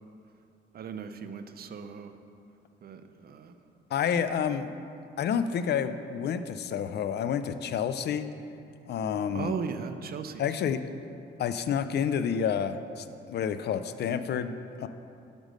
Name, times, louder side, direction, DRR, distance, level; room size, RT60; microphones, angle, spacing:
voice 1, 0.7-2.2 2.8-3.6 9.3-10.5, right 6 dB, 50° right, 9 dB, 0.5 m, -37 dB
voice 2, 3.9-4.7 5.2-8.3 8.9-9.5 10.4-10.8 11.4-14.9, left 7 dB, 60° left, 11 dB, 0.4 m, -29 dB
6.3 x 5.2 x 6.4 m, 2.6 s
cardioid pair, 90°, 20 cm